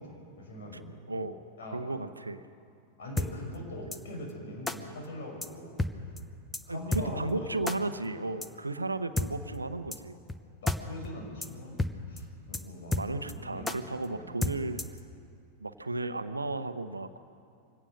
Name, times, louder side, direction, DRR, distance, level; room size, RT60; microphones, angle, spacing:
voice 1, 0.0-0.9 1.6-1.8 3.0-5.8 6.6-7.5 8.2-8.3 8.8-8.9 10.6-11.8 12.1-14.4, left 1 dB, 60° left, 1 dB, 5.7 m, -42 dB
voice 2, 1.7-2.5 6.7-10.2 12.9-14.8 15.6-17.2, right 2 dB, 80° right, 11 dB, 0.9 m, -34 dB
sound 1, 3.2-3.3 3.9-4.0 4.7-4.8 5.4-5.5 5.8-5.9 6.2-6.3 6.5-6.6 6.9-7.0 7.7-7.8 8.4-8.5 9.2-9.3 9.9-10.0 10.3-10.4 10.7-10.8 11.0-11.1 11.4-11.5 11.8-11.9 12.2-12.3 12.5-12.6 12.9-13.3 13.7-13.8 14.4-15.0, left 2 dB, 10° left, 1.0 m, -30 dB
24.0 x 17.5 x 6.5 m, 2.5 s
figure-of-eight pair, 90°, 0 cm